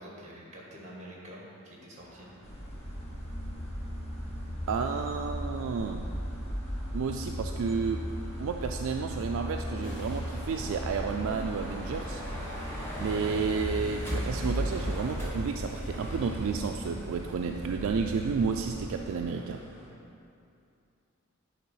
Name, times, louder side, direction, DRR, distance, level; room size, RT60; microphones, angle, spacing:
voice 1, 0.0-2.3, equal, 35° right, -3 dB, 1.7 m, -47 dB
sound 1, 2.0-19.9, equal, 10° left, 1.9 m, -41 dB
sound 2, 2.4-19.0, equal, 30° left, 0.9 m, -38 dB
voice 2, 4.7-6.1 6.9-8.0 8.4-12.2 13.0-19.6, right 5 dB, 65° right, 4 dB, 0.3 m, -31 dB
sound 3, 9.6-14.2, equal, 60° left, 1.4 m, -48 dB
10.0 x 3.7 x 5.6 m, 2.6 s
head